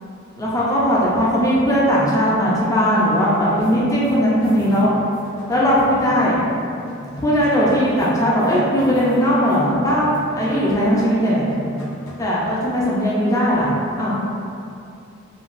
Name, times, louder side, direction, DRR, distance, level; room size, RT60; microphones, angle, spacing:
voice 1, 0.4-4.9 5.5-6.4 7.2-11.4 12.2-14.2, equal, 15° left, -7 dB, 0.3 m, -18 dB
sound 1, 3.6-6.6 6.9-9.6 9.9-11.0 11.2-12.3, equal, 75° left, 0.7 m, -38 dB
3.0 x 2.2 x 2.5 m, 2.6 s
head